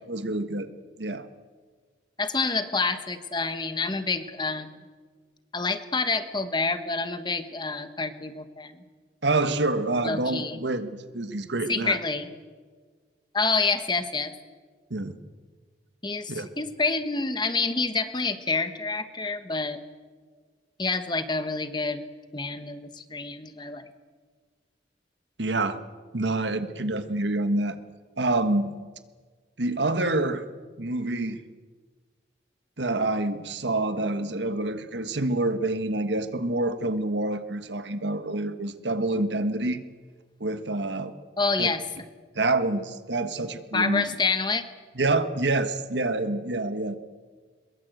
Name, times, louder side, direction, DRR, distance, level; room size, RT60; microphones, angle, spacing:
voice 1, 0.1-0.7 1.0-1.3 9.2-12.0 14.9-15.2 16.3-16.5 25.4-25.8 26.1-27.8 28.2-28.7 29.6-30.4 30.8-31.4 32.8-39.8 40.4-41.1 41.6-41.7 42.3-44.0 45.0-47.0, right 2 dB, 90° right, 10 dB, 1.5 m, -27 dB
voice 2, 2.2-4.8 5.5-8.8 10.0-10.6 11.7-12.3 13.3-14.3 16.0-19.8 20.8-22.0 22.3-23.8 41.4-41.8 43.7-44.6, left 4 dB, 25° left, 10 dB, 1.3 m, -28 dB
22.0 x 22.0 x 8.0 m, 1.5 s
head